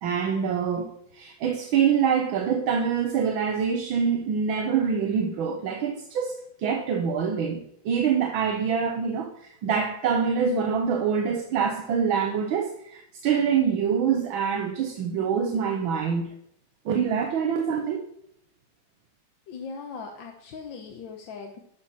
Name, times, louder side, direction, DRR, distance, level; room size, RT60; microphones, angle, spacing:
voice 1, 0.0-16.3 16.9-18.1, right 7 dB, 80° right, 4 dB, 1.7 m, -25 dB
voice 2, 19.5-21.6, left 5 dB, 70° left, 2 dB, 1.7 m, -39 dB
12.0 x 5.2 x 5.7 m, 0.73 s
omnidirectional pair, 2.2 m